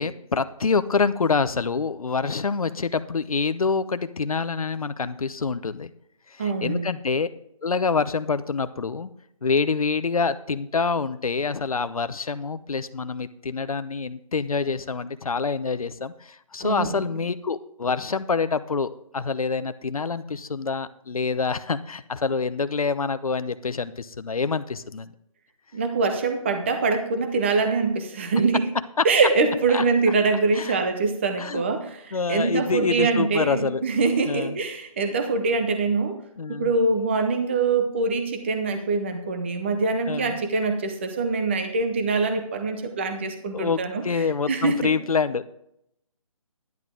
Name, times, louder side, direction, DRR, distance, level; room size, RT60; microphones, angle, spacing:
voice 1, 0.0-5.9 6.3-7.3 7.6-9.1 9.4-25.1 29.0-29.1 29.7-29.8 30.5-30.8 31.4-31.6 32.1-33.8 34.3-34.6 36.4-36.7 40.1-40.4 43.5-45.5, left 4 dB, 80° left, 12 dB, 0.7 m, -26 dB
voice 2, 6.4-6.9 16.6-16.9 25.7-28.6 29.0-36.2 36.5-44.0 44.5-44.9, right 4 dB, 20° right, 6 dB, 0.7 m, -24 dB
10.5 x 10.5 x 3.7 m, 0.74 s
figure-of-eight pair, 165°, 18 cm